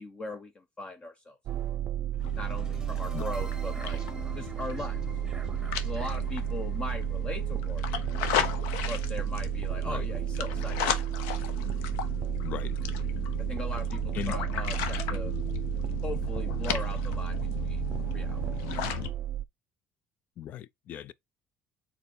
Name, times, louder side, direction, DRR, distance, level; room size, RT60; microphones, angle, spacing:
voice 1, 0.0-1.4 2.3-5.0 5.8-8.1 8.9-10.8 13.5-15.3 16.0-18.5, left 2 dB, 30° left, 0.9 m, -40 dB
sound 1, 1.5-19.4, right 12 dB, 55° right, 0.4 m, -32 dB
sound 2, 2.1-8.2, right 3 dB, 15° right, 1.1 m, -49 dB
sound 3, 2.2-19.1, left 9 dB, 90° left, 0.9 m, -36 dB
voice 2, 12.4-12.8 14.1-14.4 20.4-21.1, left 10 dB, 55° left, 0.5 m, -37 dB
4.5 x 4.1 x 5.3 m
cardioid pair, 100°, 3 cm